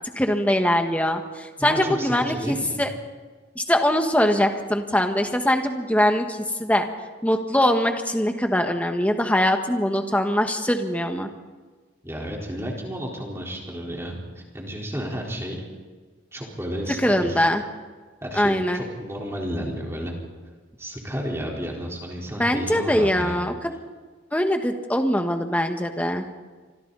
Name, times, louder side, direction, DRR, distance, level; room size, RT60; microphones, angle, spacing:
voice 1, 0.1-2.9 3.5-6.9 7.2-11.3 17.0-17.6 18.3-18.8 22.4-23.7 24.3-26.2, left 1 dB, 10° left, 4 dB, 1.7 m, -22 dB
voice 2, 1.6-2.8 12.0-15.6 16.3-17.4 18.2-20.1 20.8-23.4, equal, 15° right, -2 dB, 4.2 m, -32 dB
29.0 x 26.0 x 4.2 m, 1.4 s
head